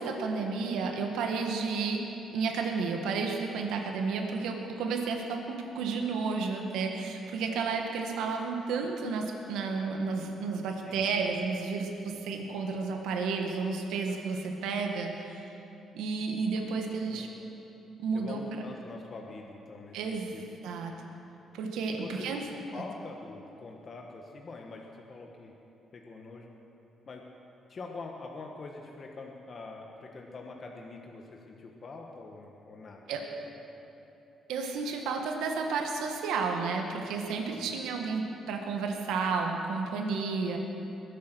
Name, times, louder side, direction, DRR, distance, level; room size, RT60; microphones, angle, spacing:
voice 1, 0.0-2.0 2.3-15.4 15.9-17.3 18.0-18.4 19.9-20.3 20.6-20.9 21.5-22.4 33.1-33.2 34.5-40.6, right 4 dB, 90° right, 3 dB, 1.6 m, -32 dB
voice 2, 17.1-17.5 18.1-20.4 21.9-22.3 22.7-25.5 25.9-26.5 27.0-27.2 27.7-33.2 33.7-33.9 37.5-37.7, left 3 dB, 45° left, 1 dB, 1.4 m, -44 dB
21.5 x 8.5 x 6.2 m, 2.9 s
cardioid pair, 90°, 0 cm